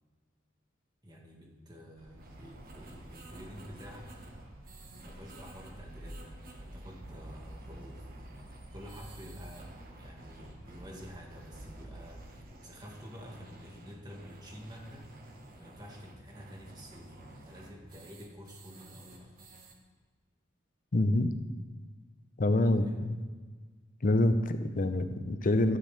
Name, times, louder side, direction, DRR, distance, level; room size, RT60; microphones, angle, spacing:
voice 1, 1.0-4.1 5.0-8.1 8.7-15.1 15.6-19.4 22.7-23.0, equal, 20° right, -1 dB, 1.7 m, -49 dB
sound 1, 2.0-12.5, right 1 dB, 90° right, 1.3 m, -50 dB
sound 2, 2.2-19.7, right 1 dB, 50° right, 1.3 m, -53 dB
voice 2, 20.9-21.3 22.4-23.2 24.0-25.8, left 1 dB, 45° left, 9 dB, 0.6 m, -26 dB
12.0 x 9.0 x 3.4 m, 1.5 s
head